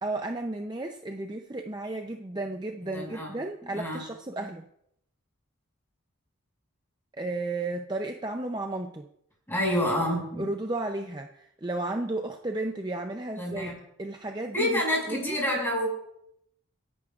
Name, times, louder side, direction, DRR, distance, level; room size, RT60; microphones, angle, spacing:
voice 1, 0.0-4.6 7.2-9.1 10.4-13.7 14.0-14.8 15.1-15.4, right 2 dB, 20° right, 4 dB, 0.6 m, -33 dB
voice 2, 2.8-3.3 3.7-4.0 9.5-10.4 13.4-13.7 14.5-15.9, left 1 dB, 10° left, -2 dB, 5.8 m, -28 dB
27.0 x 11.0 x 2.4 m, 0.75 s
head